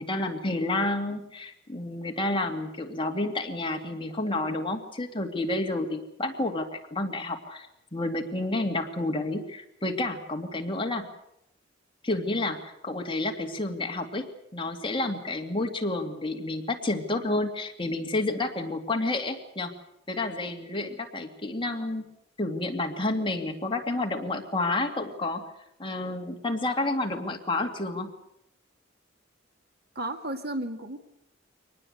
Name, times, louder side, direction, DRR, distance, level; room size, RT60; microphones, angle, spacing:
voice 1, 0.0-7.7 7.9-11.1 12.0-14.3 14.5-19.7 20.1-22.0 22.4-25.4 25.8-28.1, left 2 dB, 25° left, 3 dB, 2.4 m, -30 dB
voice 2, 30.0-31.0, right 1 dB, 55° right, 6 dB, 2.3 m, -33 dB
24.5 x 19.5 x 8.1 m, 0.76 s
head